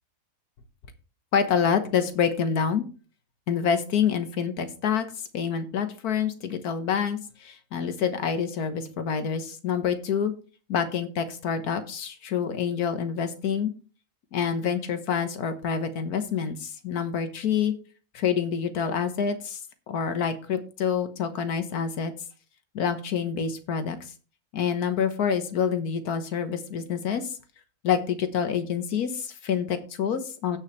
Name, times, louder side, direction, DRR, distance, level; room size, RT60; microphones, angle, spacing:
voice 1, 1.3-2.8 3.5-5.1 5.3-10.3 10.7-13.7 14.3-17.7 18.1-19.6 19.9-22.1 22.7-24.1 24.5-27.3 27.8-30.6, left 7 dB, 80° left, 9 dB, 1.6 m, -27 dB
16.5 x 5.6 x 3.2 m, 0.36 s
omnidirectional pair, 1.6 m